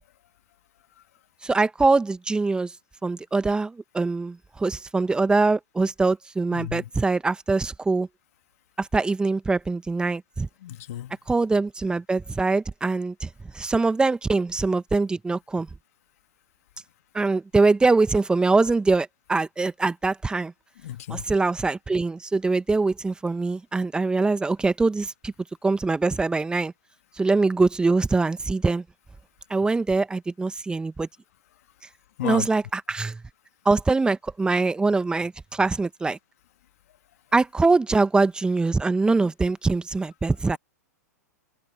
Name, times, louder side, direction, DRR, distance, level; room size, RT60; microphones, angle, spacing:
voice 1, 1.4-2.7 3.0-8.1 8.8-10.5 11.3-15.7 17.1-20.5 21.1-25.3 25.6-26.7 27.2-28.8 29.5-31.1 32.2-33.2 33.6-36.2 37.3-40.6, right 3 dB, 10° right, 1.5 m, -23 dB
voice 2, 6.5-6.8 10.6-11.2 20.8-21.2 32.2-32.5, left 12 dB, 60° left, 2.7 m, -32 dB
figure-of-eight pair, 105°, 9 cm